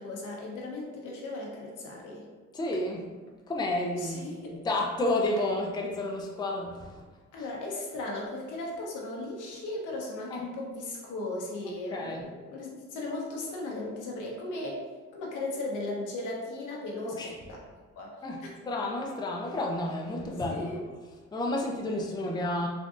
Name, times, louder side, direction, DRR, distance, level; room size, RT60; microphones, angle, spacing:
voice 1, 0.0-2.2 4.0-4.6 7.3-14.8 15.1-17.6 18.0-18.1 18.4-18.6 20.5-20.8, left 2 dB, 80° left, -2 dB, 0.9 m, -37 dB
voice 2, 2.5-3.1 3.5-4.3 4.6-7.0 10.3-10.4 11.9-12.2 17.0-17.3 18.2-20.8 21.3-22.7, left 1 dB, 15° left, 0 dB, 0.4 m, -31 dB
3.6 x 2.6 x 2.5 m, 1.4 s
cardioid pair, 90°, 30 cm